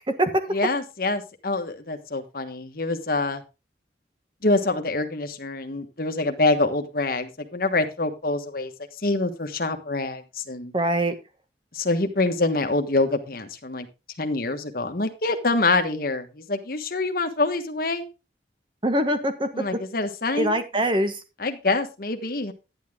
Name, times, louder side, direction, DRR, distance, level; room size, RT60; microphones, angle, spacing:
voice 1, 0.5-3.4 4.4-8.7 9.0-10.7 11.7-13.9 14.2-18.1 19.5-20.6 21.4-22.5, left 2 dB, 55° left, 6 dB, 1.3 m, -25 dB
voice 2, 10.7-11.1 18.8-19.5 20.3-21.2, right 1 dB, 30° right, 8 dB, 1.4 m, -23 dB
10.5 x 9.8 x 3.6 m, 0.28 s
head